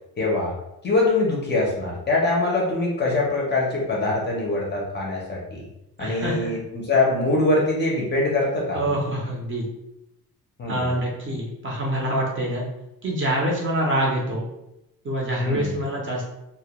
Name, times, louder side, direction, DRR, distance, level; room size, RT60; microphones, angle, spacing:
voice 1, 0.2-0.5 0.8-5.7 6.0-8.8 10.6-10.9 15.4-15.7, left 2 dB, 30° left, -3 dB, 0.4 m, -23 dB
voice 2, 6.0-6.5 8.7-9.7 10.7-12.7 13.0-14.5 15.0-16.2, right 1 dB, 35° right, -3 dB, 0.5 m, -25 dB
2.1 x 2.0 x 2.8 m, 0.88 s
cardioid pair, 165°, 38 cm